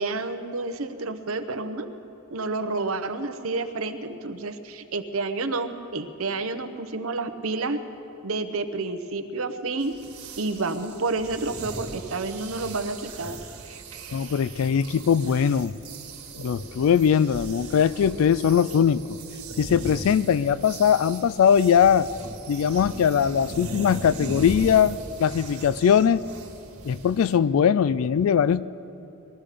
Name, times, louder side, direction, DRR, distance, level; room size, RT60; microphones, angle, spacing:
voice 1, 0.0-1.9 2.3-7.8 8.2-9.9 10.4-13.4, right 3 dB, 70° right, 9 dB, 0.9 m, -29 dB
sound 1, 9.8-27.4, right 3 dB, 85° right, 1.7 m, -39 dB
voice 2, 14.1-15.7 16.4-19.0 19.6-22.1 22.5-26.2 26.9-28.7, left 8 dB, 70° left, 17 dB, 0.3 m, -21 dB
20.5 x 13.0 x 5.0 m, 2.9 s
head